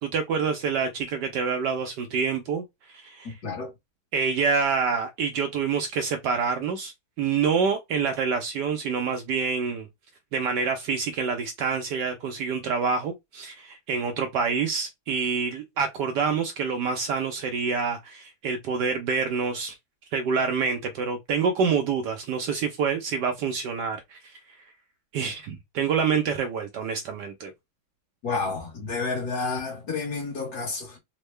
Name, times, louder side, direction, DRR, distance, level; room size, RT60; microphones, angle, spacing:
voice 1, 0.0-3.3 4.1-9.9 10.3-19.8 20.1-24.4 25.1-27.5, right 5 dB, 75° right, 1.0 m, -27 dB
voice 2, 3.2-3.7 28.2-31.0, left 4 dB, 55° left, 1.6 m, -30 dB
3.6 x 2.1 x 3.2 m
omnidirectional pair, 2.2 m